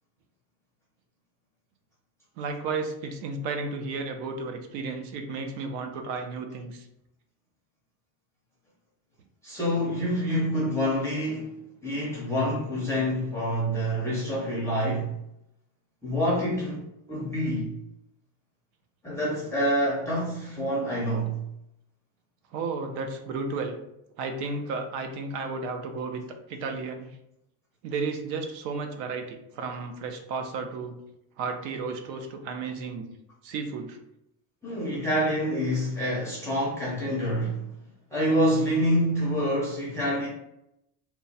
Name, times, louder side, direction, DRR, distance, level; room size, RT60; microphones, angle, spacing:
voice 1, 2.4-6.9 22.5-23.8 24.2-26.2 26.5-27.1 27.8-31.0 31.4-33.1 33.4-34.0, right 4 dB, 85° right, 6 dB, 0.8 m, -33 dB
voice 2, 9.4-11.6 11.8-15.1 16.0-17.7 19.0-21.4 34.6-37.7 38.1-40.3, equal, 5° left, -6 dB, 0.4 m, -27 dB
3.0 x 2.2 x 4.0 m, 0.81 s
cardioid pair, 160°, 49 cm